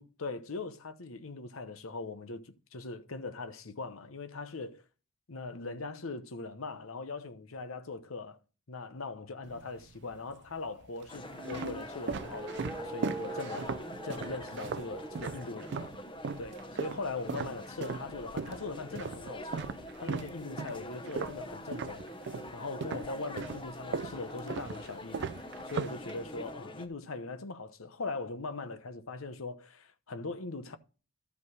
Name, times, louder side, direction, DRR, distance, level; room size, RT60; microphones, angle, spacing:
voice 1, 0.0-4.8 5.3-8.4 8.7-13.7 14.0-15.9 16.4-19.6 20.0-22.0 22.5-25.3 25.6-30.8, left 3 dB, 90° left, 1.0 m, -40 dB
sound 1, 9.4-10.2 10.8-16.0 16.2-22.5 22.8-26.5, right 5 dB, 60° right, 0.4 m, -38 dB
sound 2, 11.1-26.9, left 1 dB, 25° left, 0.9 m, -45 dB
sound 3, 11.1-15.5, right 2 dB, 10° right, 1.5 m, -44 dB
12.5 x 5.2 x 4.7 m
head